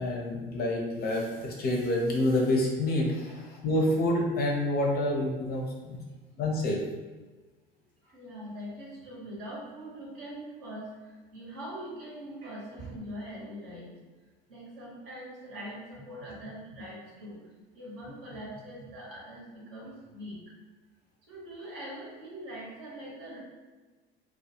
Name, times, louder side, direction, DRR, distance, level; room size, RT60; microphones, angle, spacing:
voice 1, 0.0-6.0 6.4-6.8, left 1 dB, 35° left, -1 dB, 0.5 m, -28 dB
voice 2, 8.0-14.0 14.5-17.4 17.7-20.4 21.3-23.4, equal, 55° right, -4 dB, 1.0 m, -42 dB
2.2 x 2.1 x 2.7 m, 1.3 s
hypercardioid pair, 70°, 29 cm